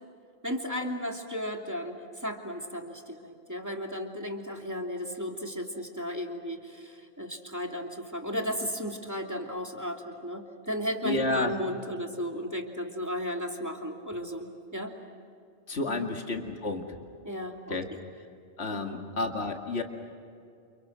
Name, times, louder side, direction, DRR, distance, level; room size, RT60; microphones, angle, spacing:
voice 1, 0.4-14.9 15.9-16.1 17.2-18.0 18.7-19.0, equal, 15° right, 1 dB, 2.7 m, -35 dB
voice 2, 11.0-11.6 15.7-16.8 17.7-17.8 18.6-19.8, left 2 dB, 60° left, 3 dB, 2.5 m, -30 dB
29.5 x 29.0 x 6.4 m, 2.4 s
omnidirectional pair, 1.2 m